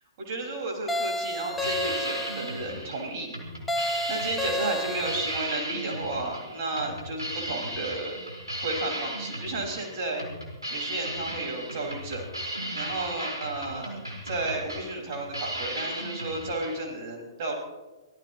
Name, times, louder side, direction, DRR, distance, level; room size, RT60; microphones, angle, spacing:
voice 1, 0.2-3.4 4.1-8.2 8.6-10.2 10.7-14.0 14.2-17.5, right 2 dB, 45° right, 0 dB, 5.9 m, -33 dB
sound 1, 0.9-2.6 3.7-5.4, left 1 dB, 5° left, 1.2 m, -31 dB
sound 2, 1.5-16.8, right 1 dB, 85° right, 4.9 m, -36 dB
24.5 x 18.0 x 3.2 m, 1.1 s
figure-of-eight pair, 115°, 2 cm